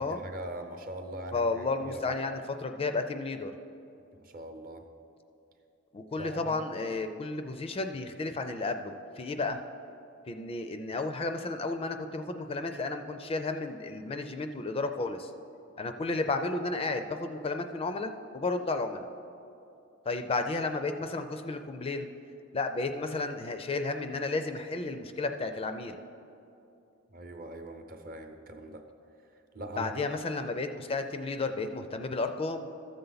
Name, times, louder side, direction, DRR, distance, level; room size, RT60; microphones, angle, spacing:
voice 1, 0.0-2.2 4.1-4.9 6.2-6.6 27.1-28.9 29.3-29.9, right 1 dB, 45° right, 6 dB, 0.7 m, -42 dB
voice 2, 1.3-3.5 5.9-9.6 10.3-15.3 15.8-19.0 20.1-22.1 22.5-26.0 29.8-32.7, left 3 dB, 30° left, 8 dB, 0.4 m, -32 dB
13.5 x 6.8 x 4.0 m, 2.7 s
head